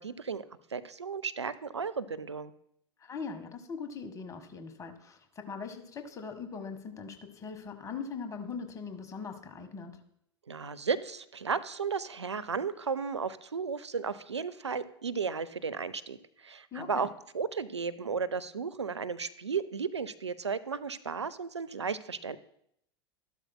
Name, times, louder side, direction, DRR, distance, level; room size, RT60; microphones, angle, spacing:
voice 1, 0.0-2.5 10.5-22.4, right 5 dB, 80° right, 14 dB, 0.5 m, -34 dB
voice 2, 3.0-10.0 16.7-17.1, left 5 dB, 20° left, 7 dB, 1.4 m, -41 dB
13.5 x 11.5 x 2.2 m, 0.73 s
figure-of-eight pair, 85°, 14 cm